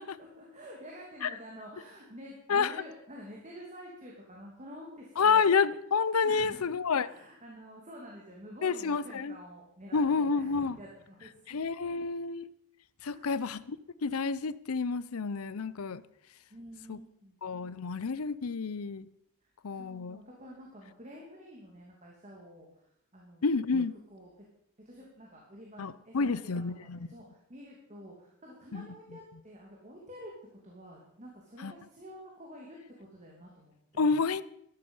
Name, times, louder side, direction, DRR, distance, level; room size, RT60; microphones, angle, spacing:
voice 1, 0.2-5.5 6.2-6.6 7.0-11.6 11.9-12.0 13.1-13.4 16.5-17.4 19.7-23.6 24.1-24.4 24.8-34.2, equal, 35° right, 2.7 m, -49 dB
voice 2, 5.2-7.1 8.6-9.4 9.9-10.8 11.5-12.5 13.0-13.8 14.0-16.0 16.9-17.0 17.4-19.1 19.6-20.2 23.4-23.9 25.8-27.1 28.7-28.9 31.6-31.7 34.0-34.4, left 5 dB, 75° left, 0.6 m, -29 dB
13.0 x 12.5 x 5.5 m
head